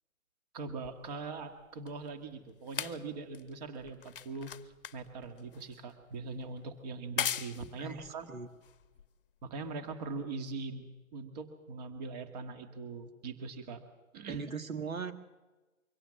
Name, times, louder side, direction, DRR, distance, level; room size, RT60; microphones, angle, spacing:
voice 1, 0.5-8.3 9.4-13.8 14.1-14.5, right 4 dB, 30° right, 7 dB, 1.9 m, -41 dB
sound 1, 0.8-9.5 10.3-10.4, left 8 dB, 40° left, 1.0 m, -42 dB
voice 2, 14.3-15.1, right 5 dB, 75° right, 8 dB, 2.0 m, -39 dB
24.0 x 17.0 x 7.6 m, 1.2 s
figure-of-eight pair, 140°, 41 cm